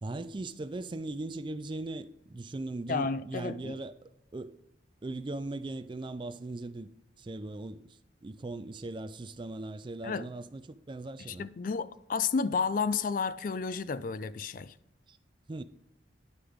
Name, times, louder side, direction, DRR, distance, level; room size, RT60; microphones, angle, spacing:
voice 1, 0.0-3.9 4.3-4.6 5.0-6.9 7.2-11.5 15.1-15.2 15.5-15.6, right 2 dB, 25° right, 0.4 m, -39 dB
voice 2, 2.9-3.8 10.0-10.3 11.3-14.7, left 5 dB, 45° left, 0.4 m, -31 dB
9.6 x 6.8 x 3.5 m
head